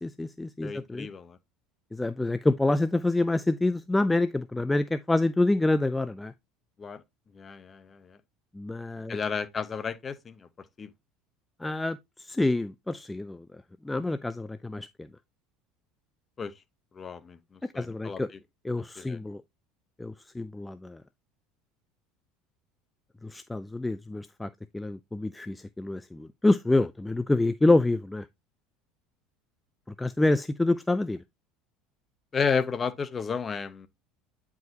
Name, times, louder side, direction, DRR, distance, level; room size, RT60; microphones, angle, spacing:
voice 1, 0.0-1.1 1.9-6.3 8.5-9.2 11.6-15.1 17.6-18.3 18.6-19.4 20.0-21.0 23.2-28.3 29.9-31.2, left 2 dB, 10° left, 0.4 m, -27 dB
voice 2, 0.6-1.4 6.8-7.0 7.3-8.2 9.1-10.5 10.8-10.9 16.4-16.5 16.9-18.2 19.0-19.2 32.3-33.9, left 5 dB, 30° left, 0.9 m, -32 dB
9.2 x 4.8 x 2.8 m
supercardioid pair, 90°, 0 cm